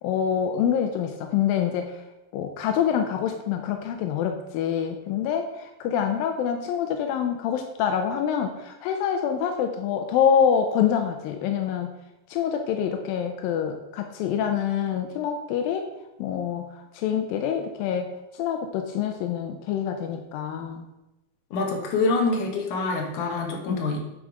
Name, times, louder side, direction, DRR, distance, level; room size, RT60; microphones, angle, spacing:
voice 1, 0.0-1.9 2.3-11.9 12.3-15.9 16.2-16.7 16.9-18.1 18.3-20.8 23.7-23.8, left 8 dB, 85° left, 5 dB, 2.4 m, -26 dB
voice 2, 21.5-24.0, left 3 dB, 65° left, 1 dB, 2.7 m, -25 dB
10.5 x 5.1 x 4.8 m, 0.98 s
omnidirectional pair, 4.0 m